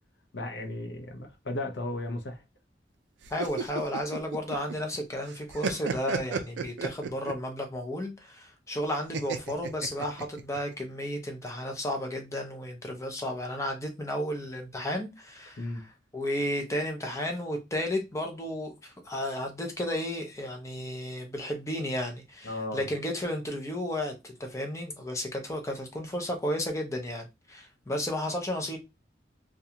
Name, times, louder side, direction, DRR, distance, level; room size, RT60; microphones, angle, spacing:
voice 1, 0.3-2.4 15.6-15.8 22.4-22.9, left 2 dB, 75° left, 0.7 m, -35 dB
sound 1, 3.2-5.0 5.3-7.5 9.1-10.6, right 5 dB, 75° right, 0.4 m, -33 dB
voice 2, 3.3-15.7 16.1-28.8, left 1 dB, 15° left, 0.5 m, -33 dB
2.4 x 2.2 x 2.8 m
head